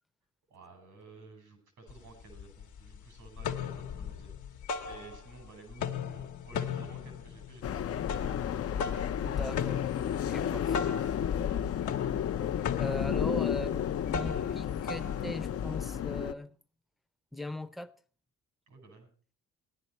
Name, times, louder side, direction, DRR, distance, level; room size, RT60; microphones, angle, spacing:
voice 1, 0.5-8.0 11.3-11.6 18.7-19.1, right 3 dB, 90° right, 4.9 m, -53 dB
sound 1, 1.9-2.0 2.3-3.0 3.3-5.5 5.7-15.9, left 7 dB, 75° left, 1.1 m, -37 dB
sound 2, 7.6-16.3, left 9 dB, 50° left, 0.6 m, -32 dB
voice 2, 9.3-9.9 10.2-10.9 12.8-16.5 17.3-17.9, left 1 dB, ahead, 0.7 m, -39 dB
15.5 x 10.5 x 4.4 m
cardioid pair, 90°, 30 cm